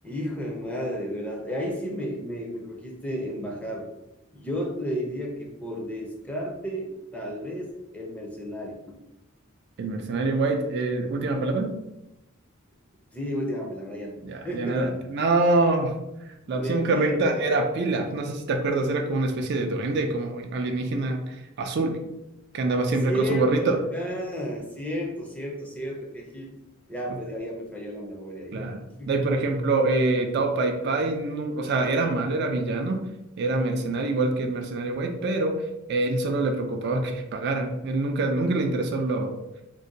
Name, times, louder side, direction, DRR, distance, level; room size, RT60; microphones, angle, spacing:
voice 1, 0.0-3.9 4.3-9.0 13.1-14.8 16.4-17.4 23.0-26.6 26.9-28.7 29.0-29.1 29.4-29.5, equal, 5° left, -2 dB, 0.5 m, -32 dB
voice 2, 9.8-11.8 14.2-15.9 16.5-22.0 22.5-23.8 27.1-27.2 28.5-28.8 29.1-33.0 33.4-35.6 35.9-39.4, right 2 dB, 55° right, 4 dB, 0.3 m, -25 dB
2.6 x 2.1 x 3.8 m, 0.92 s
head